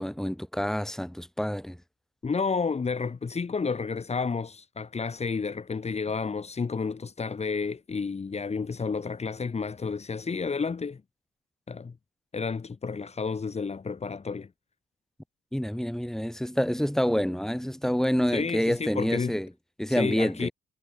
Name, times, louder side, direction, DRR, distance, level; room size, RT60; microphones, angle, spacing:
voice 1, 0.0-1.8 15.5-19.5 19.8-20.5, equal, ahead, 6.3 m, -27 dB
voice 2, 2.2-11.0 11.7-11.9 12.3-14.5 18.3-19.3 19.9-20.5, left 5 dB, 30° left, 3.5 m, -31 dB
cardioid pair, 90°, 20 cm